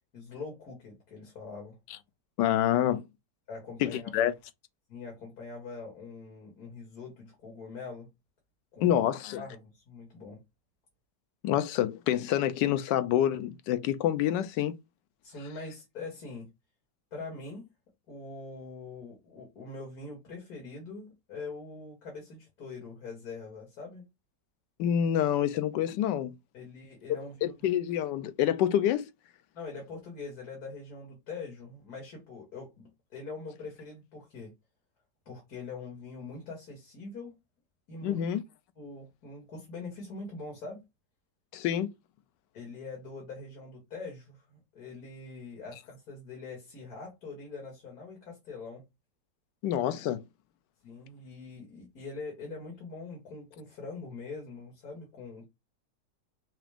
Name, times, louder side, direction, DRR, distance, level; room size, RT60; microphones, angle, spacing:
voice 1, 0.1-1.8 3.5-4.3 4.9-8.1 8.7-9.0 9.4-10.4 15.2-16.5 17.1-17.7 18.1-24.0 26.5-27.5 29.5-34.5 35.3-37.4 37.9-38.2 38.8-40.8 42.5-48.8 50.8-55.4, left 3 dB, 60° left, 2.3 m, -43 dB
voice 2, 2.4-3.1 3.8-4.3 8.8-9.4 11.4-14.7 24.8-26.3 27.4-29.1 38.0-38.4 41.5-41.9 49.6-50.2, left 11 dB, 85° left, 1.2 m, -27 dB
6.0 x 2.5 x 3.5 m
omnidirectional pair, 1.9 m